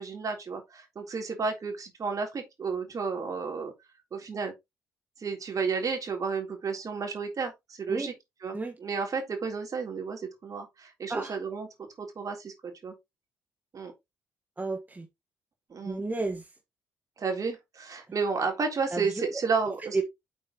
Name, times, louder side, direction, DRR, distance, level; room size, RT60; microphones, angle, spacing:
voice 1, 0.0-3.7 4.1-4.5 5.2-7.5 7.8-8.1 8.4-8.6 8.8-11.7 12.0-12.9 13.7-13.9 15.7-16.0 17.2-20.0, right 5 dB, 45° right, 3.7 m, -32 dB
voice 2, 14.6-15.1 15.8-16.6 18.9-19.3 19.8-20.0, right 3 dB, 20° right, 1.7 m, -32 dB
8.5 x 6.9 x 3.1 m
figure-of-eight pair, 40°, 8 cm